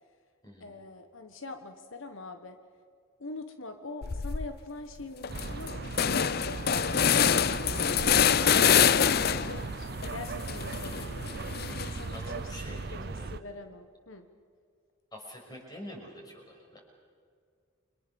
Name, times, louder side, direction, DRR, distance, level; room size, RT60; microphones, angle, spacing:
voice 1, 0.6-2.6 3.2-14.3, left 2 dB, 75° left, 7 dB, 1.4 m, -43 dB
sound 1, 4.0-4.5 4.9-5.0 5.2-9.7 10.0-12.2, left 8 dB, 50° left, 0.6 m, -26 dB
sound 2, 5.3-13.4, right 3 dB, 50° right, 0.6 m, -38 dB
voice 2, 12.1-13.3 15.1-16.8, equal, 20° left, 0 dB, 6.1 m, -45 dB
30.0 x 24.5 x 7.1 m, 2.1 s
head